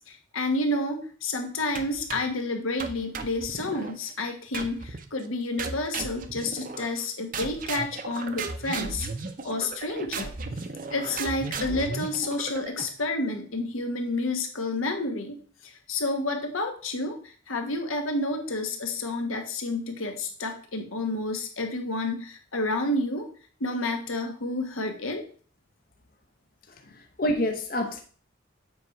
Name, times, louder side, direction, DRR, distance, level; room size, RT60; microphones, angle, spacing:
voice 1, 0.1-9.1 9.4-10.3 10.9-15.4 15.6-23.3 23.6-25.2, left 2 dB, 85° left, 4 dB, 1.3 m, -30 dB
sound 1, 1.8-2.4 2.8-4.0 4.5-5.1 5.6-7.0 7.3-13.0, right 4 dB, 40° right, 0.6 m, -35 dB
voice 2, 26.8-28.0, left 1 dB, 45° left, 4 dB, 0.7 m, -28 dB
7.7 x 3.4 x 5.7 m, 0.42 s
head